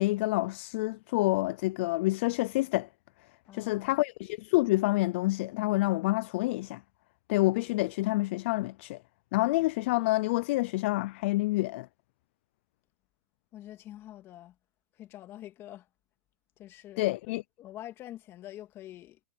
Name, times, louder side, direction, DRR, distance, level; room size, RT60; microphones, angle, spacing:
voice 1, 0.0-2.9 3.5-6.8 7.3-9.0 9.3-11.9 17.0-17.4, left 20 dB, 45° left, 0.5 m, -28 dB
voice 2, 3.5-4.0 13.5-14.6 14.9-15.9 16.6-17.1 17.6-19.2, left 13 dB, 30° left, 2.5 m, -46 dB
hypercardioid pair, 135°, 9 cm